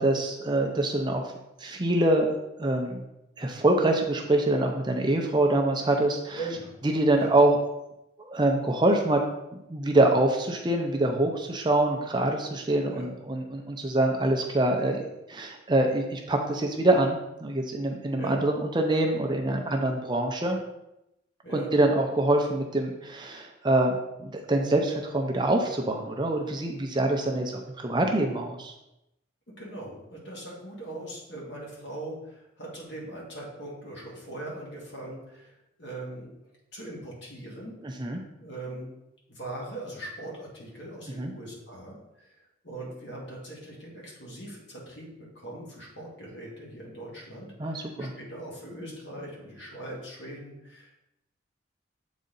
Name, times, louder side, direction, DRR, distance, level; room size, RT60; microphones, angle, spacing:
voice 1, 0.0-1.3 1.6-2.3 2.6-3.0 3.4-6.4 6.8-7.6 8.2-9.2 9.7-15.0 15.3-20.6 21.5-28.7 37.8-38.2 41.2-41.3 47.6-48.1, right 1 dB, 20° right, 2 dB, 0.5 m, -25 dB
voice 2, 6.4-6.7 7.1-7.3 12.9-13.1 18.1-18.4 21.4-21.7 29.5-36.3 36.7-37.8 38.4-38.9 39.3-42.3 42.6-45.1 45.4-51.1, right 2 dB, 60° left, -3 dB, 1.9 m, -40 dB
7.5 x 4.1 x 3.9 m, 0.88 s
head